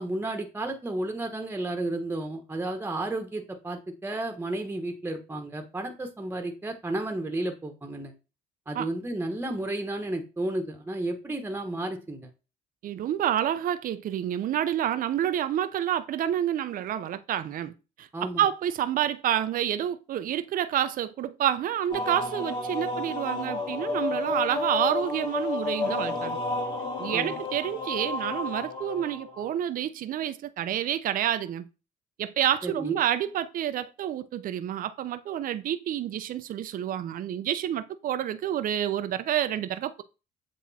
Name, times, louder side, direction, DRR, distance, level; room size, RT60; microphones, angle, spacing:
voice 1, 0.0-8.1 8.7-12.3 18.1-18.4 27.1-27.4 32.6-33.0, right 2 dB, 10° right, 1.2 m, -32 dB
voice 2, 12.8-26.4 27.0-31.7 32.2-40.0, right 11 dB, 55° right, 0.7 m, -28 dB
sound 1, 21.9-29.5, left 3 dB, 30° left, 3.1 m, -31 dB
7.7 x 3.6 x 4.2 m
cardioid pair, 110°, 17 cm